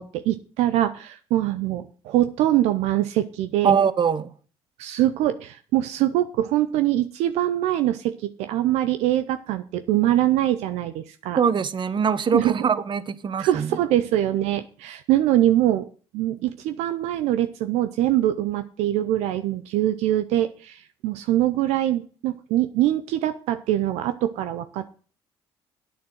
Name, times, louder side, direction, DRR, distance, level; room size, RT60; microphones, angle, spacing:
voice 1, 0.0-3.7 4.8-11.4 12.3-12.6 13.4-15.9 16.1-24.9, right 13 dB, 75° right, 10 dB, 0.6 m, -23 dB
voice 2, 3.6-4.3 11.4-13.7, right 7 dB, 45° right, 15 dB, 1.0 m, -22 dB
9.0 x 6.8 x 7.8 m, 0.40 s
supercardioid pair, 60°, 11 cm